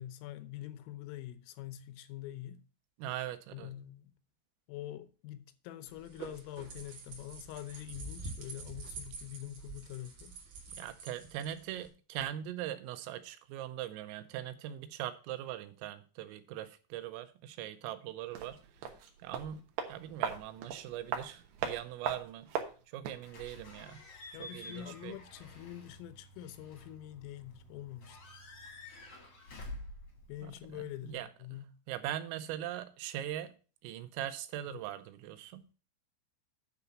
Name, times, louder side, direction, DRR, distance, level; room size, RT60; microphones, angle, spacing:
voice 1, 0.0-2.6 3.5-4.1 4.7-10.4 24.3-28.4 30.3-31.7 34.7-34.9, left 13 dB, 85° left, 3.4 m, -45 dB
voice 2, 3.0-3.7 10.8-18.6 19.2-22.5 22.9-24.0 24.4-25.1 31.0-31.3 31.9-33.5 33.8-35.6, right 12 dB, 90° right, 3.5 m, -41 dB
sound 1, 5.9-11.9, right 4 dB, 50° right, 2.5 m, -47 dB
sound 2, 18.3-23.3 23.6-23.7, right 7 dB, 70° right, 2.8 m, -39 dB
Slam / Squeak / Alarm, 23.2-31.2, left 2 dB, 55° left, 1.7 m, -50 dB
9.7 x 4.0 x 7.1 m
omnidirectional pair, 5.8 m